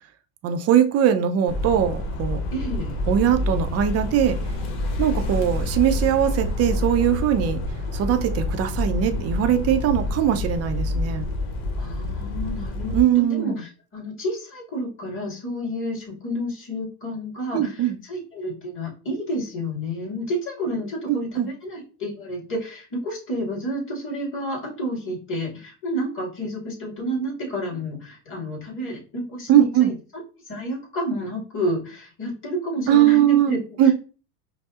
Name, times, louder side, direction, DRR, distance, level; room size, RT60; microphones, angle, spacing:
voice 1, 0.4-2.4 3.1-4.4 5.0-7.6 7.9-11.3 12.9-13.6 17.5-18.0 21.1-21.5 29.5-29.9 32.9-33.9, right 10 dB, 35° right, 8 dB, 0.5 m, -20 dB
sound 1, 1.5-13.0, left 2 dB, 70° left, 1.0 m, -27 dB
voice 2, 2.5-3.0 11.8-29.9 30.4-33.9, equal, 30° left, -4 dB, 1.9 m, -30 dB
5.3 x 2.0 x 2.3 m, 0.36 s
supercardioid pair, 115°, 42 cm